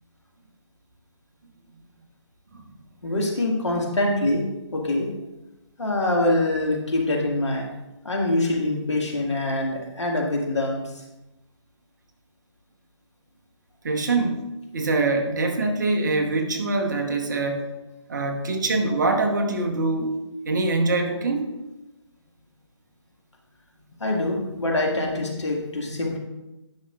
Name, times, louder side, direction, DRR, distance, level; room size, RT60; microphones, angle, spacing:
voice 1, 3.0-4.4 4.7-5.1 5.8-7.7 8.0-11.0 24.0-26.2, left 2 dB, 70° left, -1 dB, 2.0 m, -24 dB
voice 2, 13.8-14.5 14.7-17.7 18.1-20.1 20.4-21.5, right 3 dB, 40° right, 3 dB, 1.0 m, -24 dB
11.0 x 5.7 x 2.4 m, 0.98 s
figure-of-eight pair, 150°, 16 cm